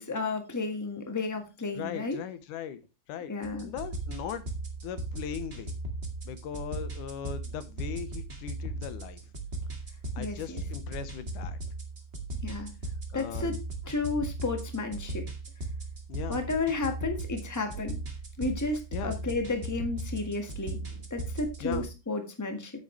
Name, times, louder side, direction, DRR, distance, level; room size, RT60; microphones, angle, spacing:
voice 1, 0.0-2.2 3.3-3.7 10.2-10.6 12.4-12.7 13.1-13.6 13.8-15.2 16.3-18.0 18.4-20.8 21.1-22.7, left 3 dB, 10° left, 5 dB, 0.8 m, -32 dB
voice 2, 1.8-2.8 3.1-3.3 3.6-4.5 4.8-5.7 6.2-9.2 10.2-11.7 13.1-13.6 16.1-16.4 18.9-19.2 20.7-20.9 21.6-21.9, left 9 dB, 90° left, 12 dB, 2.6 m, -39 dB
sound 1, 3.4-21.8, right 2 dB, 25° right, 1.6 m, -37 dB
9.3 x 8.5 x 3.2 m, 0.27 s
omnidirectional pair, 3.5 m